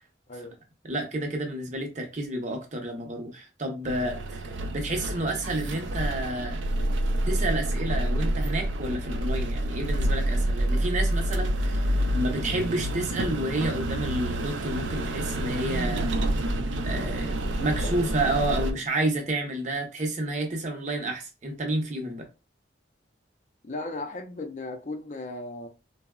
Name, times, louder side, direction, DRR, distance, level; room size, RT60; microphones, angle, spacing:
voice 1, 0.3-0.6 17.3-18.4 23.6-25.7, left 2 dB, 40° left, 0.5 m, -37 dB
voice 2, 0.8-4.5 4.7-6.7 7.3-11.8 12.1-16.1 16.3-16.4 16.8-17.3 17.6-22.3, right 1 dB, 40° right, 0.7 m, -30 dB
sound 1, 3.8-18.7, right 1 dB, 80° right, 0.4 m, -28 dB
3.7 x 2.0 x 2.3 m
head